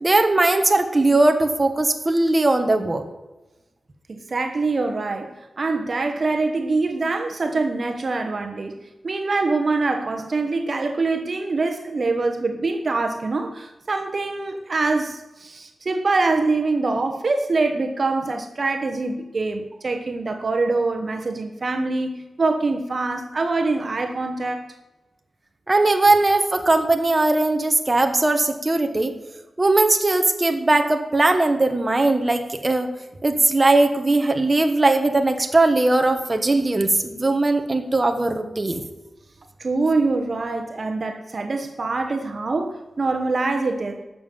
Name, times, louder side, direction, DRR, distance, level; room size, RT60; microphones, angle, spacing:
voice 1, 0.0-3.0 25.7-29.1 29.6-32.9 33.2-38.8, right 2 dB, 25° right, 5 dB, 1.3 m, -19 dB
voice 2, 4.1-8.8 9.0-24.7 39.6-44.0, right 3 dB, 50° right, 5 dB, 1.2 m, -24 dB
12.0 x 7.2 x 7.6 m, 1.1 s
wide cardioid pair, 100°, 0 cm